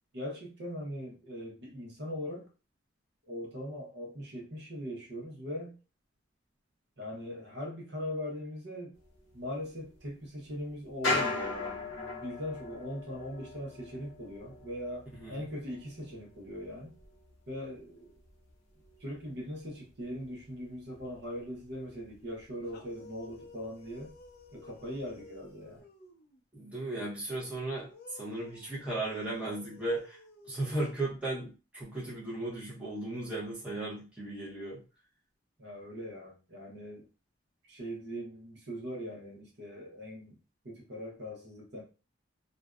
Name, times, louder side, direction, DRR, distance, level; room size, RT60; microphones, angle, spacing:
voice 1, 0.1-2.5 3.2-5.7 7.0-8.9 9.3-16.9 17.5-18.2 19.0-24.1 24.5-25.8 35.6-37.1 37.7-40.4 40.6-41.8, equal, 60° right, -1 dB, 0.8 m, -40 dB
sound 1, 8.9-20.5 20.8-22.4 22.7-22.8 23.2-23.7 24.0-25.2 25.7-25.8, left 2 dB, 75° left, 0.9 m, -40 dB
sound 2, 22.6-26.4 27.7-31.3, left 4 dB, 55° left, 0.4 m, -54 dB
voice 2, 26.5-30.2 30.5-34.8, right 2 dB, 5° right, -7 dB, 0.8 m, -36 dB
2.5 x 2.2 x 2.3 m, 0.33 s
head